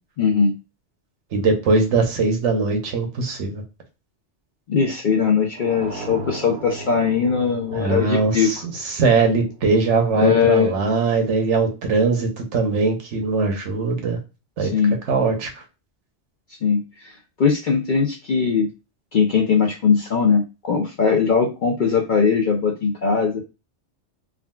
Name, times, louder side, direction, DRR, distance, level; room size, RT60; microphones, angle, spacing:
voice 1, 0.2-0.5 4.7-8.5 10.2-10.8 14.6-15.0 16.6-18.7 19.1-23.4, left 6 dB, 60° left, 1 dB, 0.5 m, -20 dB
voice 2, 1.3-3.6 7.7-8.6 8.8-14.2 14.6-14.7 15.1-15.5, right 4 dB, 75° right, 4 dB, 1.1 m, -21 dB
sound 1, 5.5-10.3, right 1 dB, 55° right, 0.6 m, -37 dB
3.6 x 2.3 x 2.2 m, 0.28 s
omnidirectional pair, 1.3 m